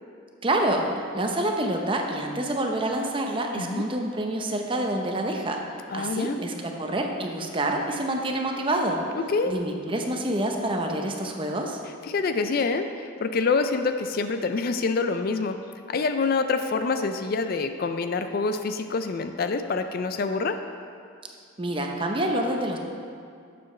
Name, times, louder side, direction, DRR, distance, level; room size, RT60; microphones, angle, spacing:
voice 1, 0.4-0.9 1.1-5.6 5.9-9.0 9.5-11.8 21.6-22.8, right 1 dB, 25° right, 2 dB, 0.7 m, -27 dB
voice 2, 5.9-6.4 9.1-9.5 12.1-15.6 15.9-20.6, left 4 dB, 50° left, 8 dB, 0.4 m, -26 dB
11.5 x 6.9 x 3.2 m, 2.3 s
head